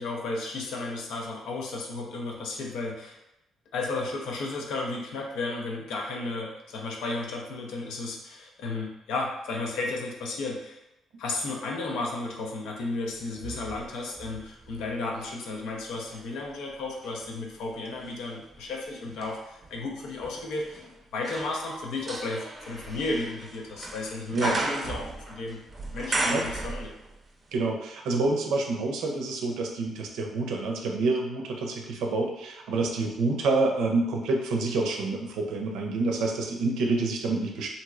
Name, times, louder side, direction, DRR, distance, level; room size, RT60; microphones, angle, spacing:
voice 1, 0.0-3.2 3.7-10.8 11.2-20.9 21.1-25.6 25.9-26.9, left 3 dB, 85° left, 0 dB, 0.6 m, -33 dB
sound 1, 13.2-15.4 15.9-27.3 27.5-27.6, right 2 dB, 35° right, 0.5 m, -36 dB
voice 2, 27.5-37.7, right 3 dB, 85° right, 2 dB, 0.5 m, -27 dB
3.0 x 2.6 x 2.4 m, 0.91 s
cardioid pair, 90°, 0 cm